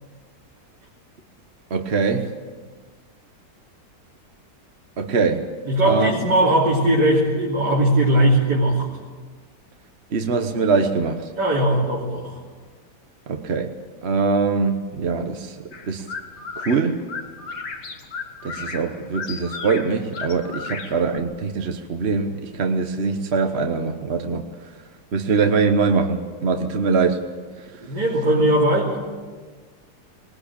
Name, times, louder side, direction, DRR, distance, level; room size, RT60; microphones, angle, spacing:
voice 1, 1.7-2.3 5.0-5.5 5.8-6.1 10.1-11.3 13.3-13.7 14.0-15.6 15.9-16.1 16.6-17.0 18.4-24.4 25.1-27.2, right 4 dB, 45° right, 6 dB, 1.3 m, -22 dB
voice 2, 5.7-8.9 11.4-12.4 27.8-29.0, right 1 dB, 85° right, -5 dB, 3.7 m, -19 dB
sound 1, 15.7-21.2, left 5 dB, 85° left, 2.4 m, -35 dB
20.5 x 20.0 x 8.6 m, 1.4 s
omnidirectional pair, 1.8 m